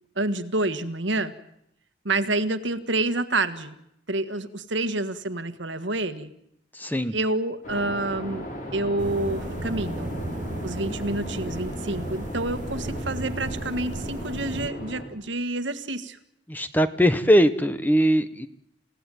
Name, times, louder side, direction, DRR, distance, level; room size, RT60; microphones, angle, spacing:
voice 1, 0.2-1.3 2.1-3.8 4.1-6.3 7.1-8.5 8.7-10.1 10.6-16.2, right 2 dB, 75° right, 11 dB, 1.6 m, -28 dB
voice 2, 6.7-7.2 16.5-18.5, equal, 10° left, 11 dB, 1.0 m, -21 dB
sound 1, 7.6-15.0, equal, 45° left, 6.3 m, -36 dB
sound 2, 9.0-14.7, right 1 dB, 40° right, 1.0 m, -35 dB
28.5 x 17.5 x 9.2 m, 0.79 s
head